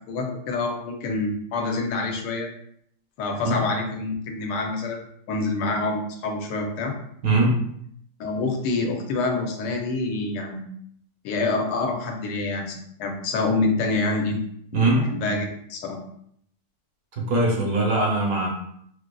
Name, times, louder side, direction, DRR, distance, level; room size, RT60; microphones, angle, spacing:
voice 1, 0.1-2.5 3.2-5.0 5.3-6.9 8.2-10.7 11.2-14.4 14.7-16.0, left 3 dB, 80° left, 2 dB, 1.2 m, -26 dB
voice 2, 7.2-7.6 14.7-15.1 17.2-18.5, right 2 dB, 60° right, -2 dB, 1.1 m, -21 dB
4.4 x 2.4 x 2.2 m, 0.69 s
omnidirectional pair, 1.9 m